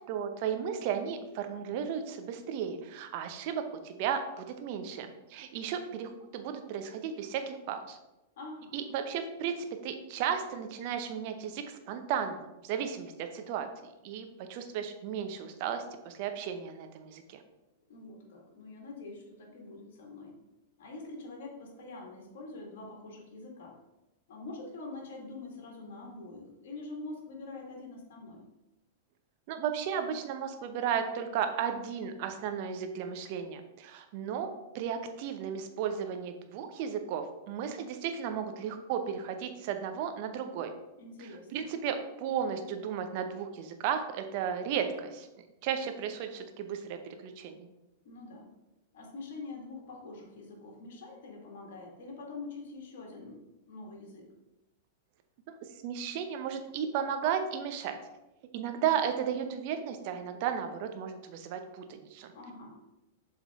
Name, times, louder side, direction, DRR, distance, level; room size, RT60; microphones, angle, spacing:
voice 1, 0.1-8.0 8.7-12.4 12.6-17.4 29.5-34.5 34.7-40.7 41.5-45.3 45.6-47.7 55.8-58.0 58.5-62.3, right 8 dB, 55° right, 7 dB, 0.8 m, -34 dB
voice 2, 8.4-8.8 17.9-20.3 20.8-23.7 24.3-28.4 41.0-41.7 48.0-48.4 48.9-54.3 62.3-62.8, left 3 dB, 65° left, -1 dB, 1.9 m, -45 dB
7.1 x 3.9 x 3.6 m, 0.98 s
hypercardioid pair, 110°, 0 cm